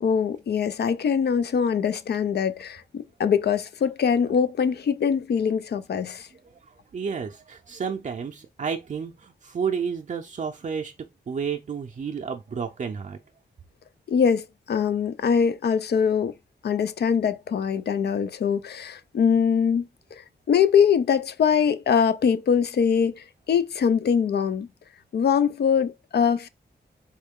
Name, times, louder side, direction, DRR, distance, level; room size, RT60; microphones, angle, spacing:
voice 1, 0.0-6.3 14.1-16.3 16.6-20.2 20.5-24.7 25.1-26.5, left 7 dB, 70° left, 0.5 m, -23 dB
voice 2, 6.3-13.2, right 6 dB, 45° right, 0.5 m, -31 dB
4.3 x 3.1 x 3.6 m
wide cardioid pair, 160°, 18 cm